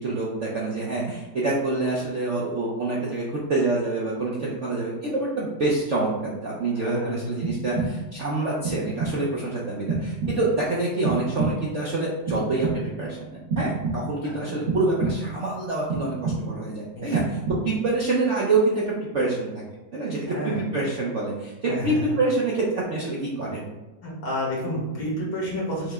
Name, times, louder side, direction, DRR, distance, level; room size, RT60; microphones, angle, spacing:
voice 1, 0.0-17.4 17.6-18.8 19.1-19.5 19.9-23.6, right 2 dB, 65° right, -5 dB, 0.7 m, -26 dB
voice 2, 6.7-7.3 14.2-14.5 17.0-17.1 20.3-20.6 21.6-21.9 24.0-25.9, equal, 70° left, -5 dB, 2.2 m, -30 dB
sound 1, 7.4-8.2 8.6-9.4 9.9-10.7 11.0-11.8 12.3-13.1 13.5-14.3 14.7-15.5 15.9-16.7 17.1-17.9, right 3 dB, 85° right, 1.8 m, -29 dB
5.6 x 2.2 x 3.5 m, 1.1 s
omnidirectional pair, 2.1 m